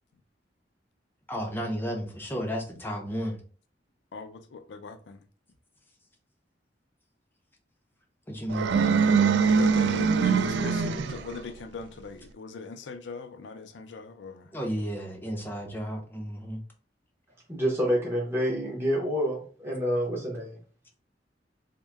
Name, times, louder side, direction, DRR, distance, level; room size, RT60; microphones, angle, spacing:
voice 1, 1.3-3.4 8.3-9.0 14.5-16.6, equal, 10° left, 0.6 m, -33 dB
voice 2, 4.1-5.2 9.5-14.5, left 4 dB, 85° left, 0.5 m, -41 dB
sound 1, 8.5-11.4, right 5 dB, 70° right, 0.3 m, -23 dB
voice 3, 17.5-20.6, equal, 15° right, 0.9 m, -28 dB
3.6 x 2.1 x 3.3 m
head